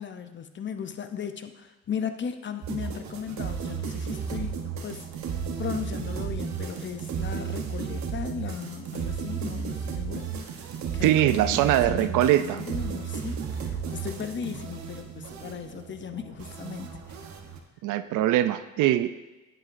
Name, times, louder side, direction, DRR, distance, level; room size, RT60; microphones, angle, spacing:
voice 1, 0.0-5.1 5.6-10.7 10.9-17.2, left 7 dB, 40° left, 9 dB, 0.7 m, -37 dB
sound 1, 2.6-17.6, right 6 dB, 65° right, 1.0 m, -34 dB
voice 2, 11.0-12.6 17.8-19.1, right 13 dB, 85° right, 12 dB, 0.5 m, -22 dB
9.8 x 7.6 x 2.6 m, 1.1 s
cardioid pair, 90°, 30 cm